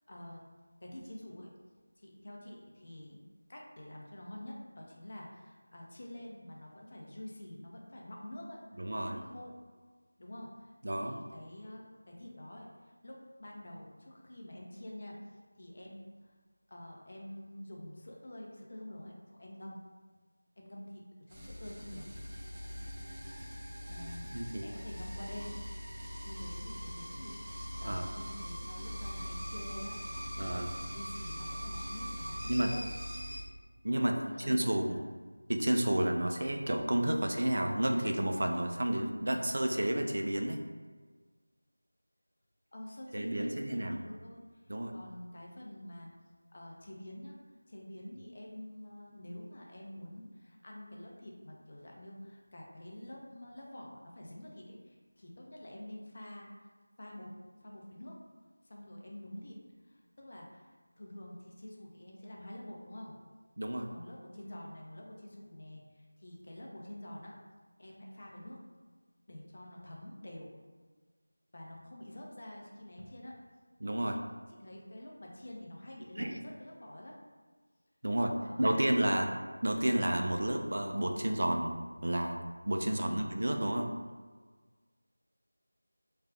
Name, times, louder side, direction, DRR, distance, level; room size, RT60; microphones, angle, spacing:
voice 1, 0.1-0.5 0.8-1.5 2.0-3.2 3.5-8.6 8.9-9.6 10.2-15.2 15.5-16.3 16.7-19.8 20.6-22.1 23.9-25.6 26.2-27.3 27.8-32.9 33.9-35.0 42.7-44.4 44.9-46.1 46.5-47.4 47.7-56.7 57.0-58.2 58.6-63.1 63.9-67.4 67.8-68.6 69.3-70.5 71.5-73.4 73.8-74.1 74.5-77.2 78.4-78.8 79.1-79.4 82.8-83.3, left 1 dB, 40° left, -2 dB, 0.6 m, -47 dB
voice 2, 8.8-9.2 10.8-11.1 24.3-24.6 27.8-28.0 30.4-30.7 32.5-32.7 33.8-34.1 34.5-35.0 35.5-40.6 43.1-44.0 44.7-44.9 63.6-63.9 73.8-74.2 76.2-76.4 78.0-79.3 79.6-81.8 82.0-82.4 82.7-83.9, right 1 dB, 60° right, 3 dB, 0.4 m, -31 dB
sound 1, 21.3-33.4, equal, 20° right, 0.7 m, -41 dB
3.3 x 2.3 x 3.4 m, 1.4 s
figure-of-eight pair, 175°, 0 cm